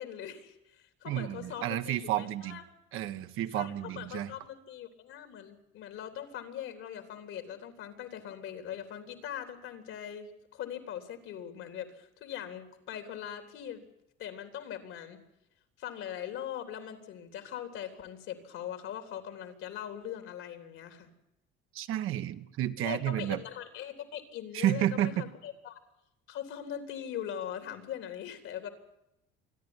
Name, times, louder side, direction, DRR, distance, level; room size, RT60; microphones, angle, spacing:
voice 1, 0.0-2.6 3.5-13.8 14.2-15.2 15.8-21.1 22.8-25.8 26.3-28.7, left 10 dB, 80° left, 7 dB, 3.6 m, -41 dB
voice 2, 1.0-2.6 2.9-4.3 21.7-23.4 24.5-25.2, right 12 dB, 80° right, 9 dB, 1.4 m, -31 dB
27.0 x 11.0 x 9.8 m, 0.85 s
cardioid pair, 120°, 21 cm